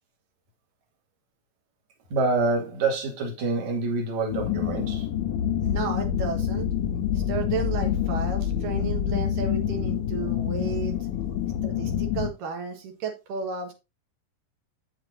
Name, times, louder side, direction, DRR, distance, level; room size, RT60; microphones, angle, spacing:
voice 1, 2.1-5.1, right 3 dB, 60° right, 3.1 m, -26 dB
sound 1, 4.3-12.3, left 9 dB, 75° left, 2.1 m, -27 dB
voice 2, 5.6-6.7 7.1-11.0 11.6-13.7, right 5 dB, 75° right, 3.0 m, -33 dB
8.2 x 7.6 x 2.6 m
omnidirectional pair, 4.0 m